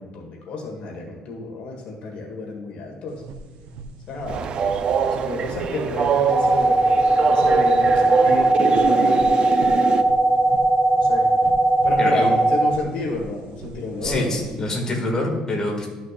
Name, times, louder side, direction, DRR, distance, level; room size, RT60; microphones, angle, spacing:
voice 1, 0.0-3.2 4.1-4.5 5.2-6.8 7.2-9.3 10.9-11.3 11.8-14.6, left 2 dB, 65° left, 0 dB, 1.7 m, -30 dB
sound 1, 3.1-14.7, right 4 dB, 80° right, 0.7 m, -40 dB
Train, 4.3-10.0, right 7 dB, 45° right, 0.5 m, -24 dB
sound 2, 6.3-12.7, right 2 dB, 5° left, 0.6 m, -18 dB
voice 2, 12.0-12.3 14.0-15.9, left 2 dB, 25° left, -1 dB, 2.1 m, -25 dB
12.5 x 6.2 x 2.5 m, 1.4 s
cardioid pair, 120°, 2 cm